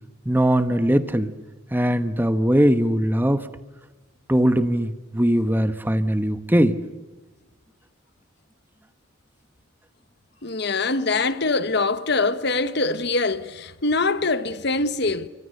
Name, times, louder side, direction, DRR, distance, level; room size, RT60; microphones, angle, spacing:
voice 1, 0.3-1.3 1.7-3.5 4.3-6.8, equal, 10° right, 1.1 m, -20 dB
voice 2, 10.4-15.3, left 3 dB, 55° left, 1.3 m, -23 dB
29.5 x 25.0 x 6.7 m
head